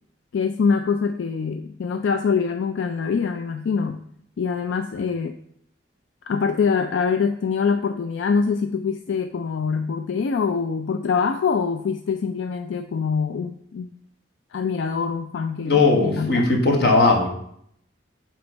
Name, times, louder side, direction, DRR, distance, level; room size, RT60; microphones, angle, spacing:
voice 1, 0.3-4.0 4.4-5.4 6.3-13.9 14.5-16.5, left 5 dB, 85° left, 7 dB, 0.4 m, -24 dB
voice 2, 15.6-17.3, left 3 dB, 60° left, 1 dB, 1.2 m, -18 dB
7.8 x 3.0 x 5.2 m, 0.70 s
head